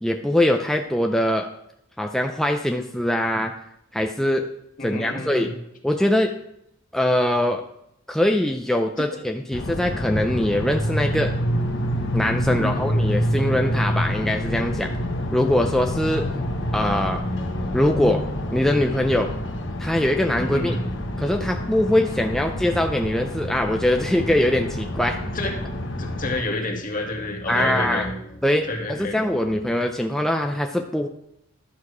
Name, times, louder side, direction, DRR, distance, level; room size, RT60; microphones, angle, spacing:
voice 1, 0.0-1.5 2.0-3.5 3.9-4.5 4.8-5.5 5.8-6.3 6.9-7.6 8.1-11.3 12.1-14.9 15.3-16.3 16.7-17.2 17.7-18.2 18.5-19.3 19.8-20.8 21.2-25.2 27.5-28.1 28.4-31.1, left 1 dB, ahead, 3 dB, 0.4 m, -22 dB
voice 2, 4.8-5.5 9.0-9.1 12.5-12.9 20.4-20.8 25.3-25.6 25.8-28.1 28.6-29.2, left 2 dB, 45° left, 1 dB, 1.8 m, -29 dB
sound 1, 9.5-26.4, equal, 65° left, 1.3 m, -27 dB
sound 2, 12.7-29.9, left 1 dB, 90° left, 1.7 m, -40 dB
11.5 x 6.5 x 4.9 m, 0.77 s
head